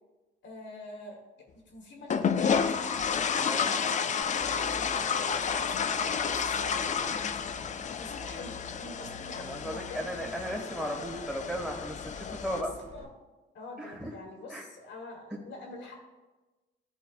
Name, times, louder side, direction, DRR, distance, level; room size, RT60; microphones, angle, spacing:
voice 1, 0.4-1.2 1.6-2.5 3.4-7.4 8.0-10.4 10.8-11.0 12.5-13.1 13.5-16.0, left 2 dB, 70° left, 0 dB, 1.6 m, -45 dB
sound 1, 2.1-12.6, left 6 dB, 40° left, 0.4 m, -31 dB
voice 2, 3.2-3.7 9.4-12.7 13.8-14.1 14.5-14.6, equal, 5° right, 0 dB, 1.8 m, -36 dB
sound 2, 4.2-13.0, left 3 dB, 30° right, 1.5 m, -49 dB
11.5 x 4.1 x 2.4 m, 1.1 s
cardioid pair, 90°, 20 cm